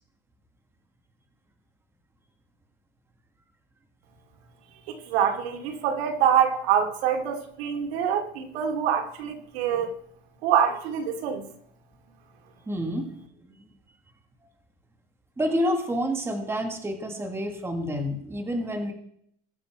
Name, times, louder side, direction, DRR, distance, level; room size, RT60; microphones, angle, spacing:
voice 1, 4.9-9.9 10.4-11.4, right 8 dB, 80° right, 4 dB, 2.4 m, -25 dB
voice 2, 12.7-13.1 13.5-13.6 15.4-18.9, equal, 10° right, 4 dB, 1.6 m, -28 dB
20.5 x 6.9 x 4.5 m, 0.69 s
supercardioid pair, 155°, 31 cm